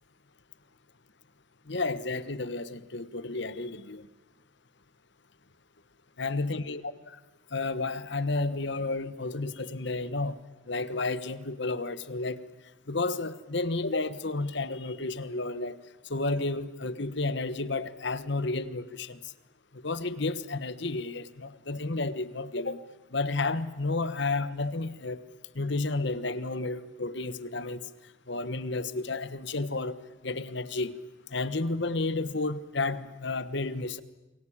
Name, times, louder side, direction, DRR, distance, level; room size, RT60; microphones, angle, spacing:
voice 1, 1.7-4.1 6.2-6.8 7.5-10.4 10.7-12.4 12.9-15.8 16.1-19.3 19.7-22.8 23.1-25.2 25.5-27.9 28.3-30.0 30.2-31.0 31.3-34.0, left 3 dB, 55° left, 1.3 m, -31 dB
29.0 x 23.5 x 8.7 m
head